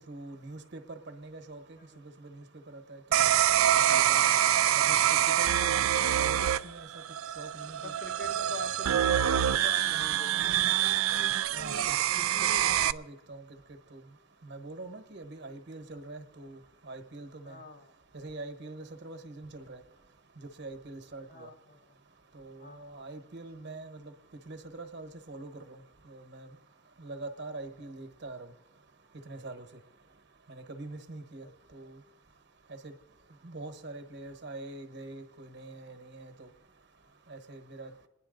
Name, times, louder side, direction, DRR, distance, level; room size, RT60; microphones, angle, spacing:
voice 1, 0.1-1.6 2.2-3.3 3.9-4.2 4.7-5.0 5.3-5.8 6.2-6.4 6.6-6.9 7.4-7.9 11.5-12.0 12.4-12.5 12.8-13.4 13.9-14.0 14.4-16.6 16.9-17.5 18.1-19.8 20.6-21.5 22.3-24.1 24.5-25.8 26.1-26.5 27.0-28.5 29.3-29.7 30.5-31.4 31.7-32.0 32.8-32.9 33.4-36.5 37.3-37.9, right 2 dB, 55° right, 7 dB, 1.1 m, -44 dB
sound 1, 3.1-12.9, right 11 dB, 85° right, 0.4 m, -26 dB
voice 2, 7.8-10.9 11.5-12.1 17.4-17.9 21.3-22.0 22.6-23.1 27.7-27.8 31.4-31.9, left 3 dB, 50° left, 6 dB, 0.9 m, -46 dB
27.0 x 10.0 x 3.9 m, 1.2 s
head